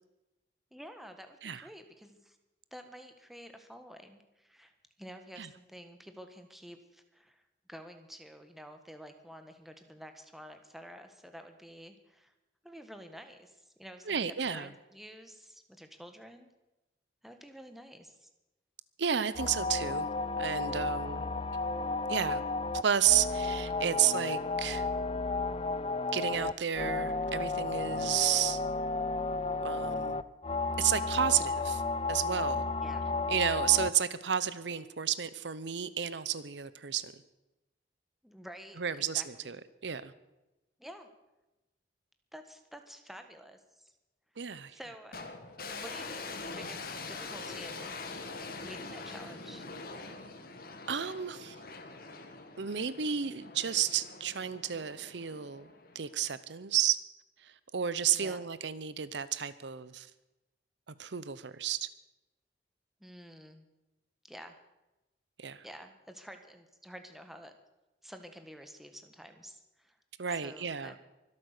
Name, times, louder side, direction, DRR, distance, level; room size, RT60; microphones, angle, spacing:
voice 1, 0.7-2.4 2.7-4.7 5.0-7.4 7.7-12.3 12.6-16.5 17.2-18.3 32.8-33.1 38.2-39.6 40.8-41.1 42.3-43.9 44.7-45.2 45.7-47.9 48.6-49.7 58.1-58.4 63.0-63.7 64.2-64.5 65.6-67.5 68.0-70.0 70.4-71.0, equal, ahead, 6 dB, 1.4 m, -50 dB
voice 2, 14.1-14.7 19.0-20.1 20.4-21.3 22.1-22.4 22.8-24.9 26.1-28.6 29.6-30.2 30.8-31.8 32.1-32.7 33.3-37.1 38.8-39.6 39.8-40.1 44.4-44.8 50.9-51.6 52.6-55.7 55.9-57.0 57.4-60.1 60.9-61.9 65.4-65.7 70.2-70.9, right 9 dB, 80° right, 15 dB, 0.8 m, -31 dB
sound 1, 19.3-33.9, left 3 dB, 30° left, 0.5 m, -33 dB
sound 2, 45.1-56.3, left 3 dB, 55° left, 1.8 m, -44 dB
23.5 x 8.6 x 6.7 m, 1.0 s
head